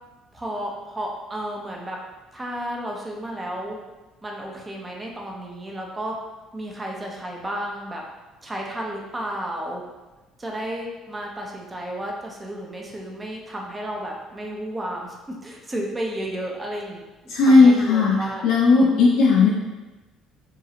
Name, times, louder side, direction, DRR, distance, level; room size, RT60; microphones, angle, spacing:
voice 1, 0.3-2.0 2.3-3.8 4.2-6.1 6.5-8.0 8.4-9.8 10.4-15.1 15.4-19.1, right 1 dB, 20° right, -1 dB, 0.6 m, -32 dB
voice 2, 17.3-18.2 18.4-19.5, left 4 dB, 65° left, -3 dB, 0.4 m, -15 dB
2.8 x 2.3 x 2.7 m, 1.1 s
hypercardioid pair, 55°, 0 cm